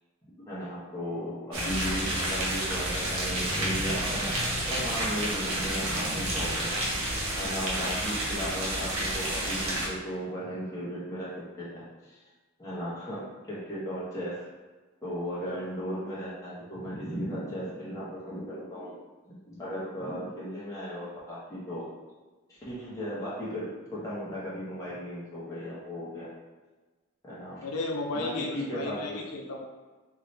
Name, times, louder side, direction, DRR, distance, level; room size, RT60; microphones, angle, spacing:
voice 1, 0.5-4.3 4.7-6.7 7.4-11.3 11.6-12.2 12.6-14.4 15.0-18.9 19.5-21.8 22.5-26.3 27.2-27.6 28.1-29.2, equal, 15° left, -9 dB, 1.2 m, -36 dB
sound 1, 1.5-9.9, right 1 dB, 70° right, 1.0 m, -30 dB
voice 2, 27.6-29.7, left 2 dB, 85° left, 1 dB, 0.6 m, -34 dB
3.8 x 2.9 x 3.3 m, 1.3 s
head